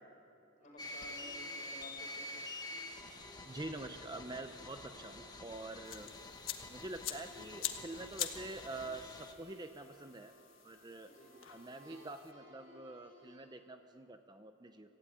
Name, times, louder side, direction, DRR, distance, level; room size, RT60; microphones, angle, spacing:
voice 1, 0.6-2.4 11.0-11.4, left 1 dB, 40° left, 0 dB, 5.1 m, -54 dB
sound 1, 0.6-13.4, left 1 dB, 65° right, 5.9 m, -61 dB
sound 2, 0.8-9.3, left 2 dB, 20° left, 1.5 m, -48 dB
voice 2, 3.4-6.1 6.7-10.3 10.6-11.1 11.5-14.9, right 2 dB, 20° right, 7 dB, 0.7 m, -46 dB
sound 3, 5.8-12.3, left 11 dB, 90° left, 1.4 m, -46 dB
25.0 x 15.0 x 9.3 m, 2.8 s
head